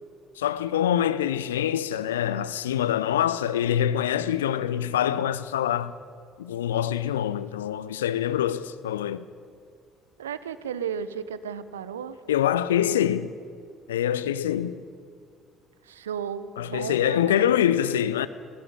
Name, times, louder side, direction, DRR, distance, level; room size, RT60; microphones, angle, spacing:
voice 1, 0.4-5.9 6.4-9.3 12.3-13.4 13.9-14.8 16.6-18.3, left 10 dB, 75° left, 0.7 m, -25 dB
voice 2, 10.2-12.2 15.8-17.5, right 7 dB, 75° right, 0.9 m, -34 dB
22.0 x 16.5 x 9.9 m
figure-of-eight pair, 55°, 0 cm